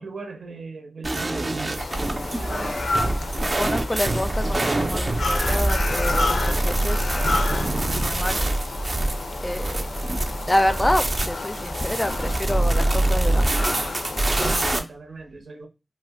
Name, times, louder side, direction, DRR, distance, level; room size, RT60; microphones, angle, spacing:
voice 1, 0.0-2.9 14.4-15.7, right 4 dB, 80° right, 0.8 m, -40 dB
sound 1, 1.0-14.8, right 2 dB, 45° right, 0.5 m, -25 dB
sound 2, 1.8-14.8, left 2 dB, 90° left, 0.4 m, -31 dB
voice 2, 3.5-7.0 7.9-8.4 9.4-9.9 10.5-13.6, left 1 dB, 25° left, 0.4 m, -27 dB
2.4 x 2.1 x 3.4 m
cardioid pair, 40°, 0 cm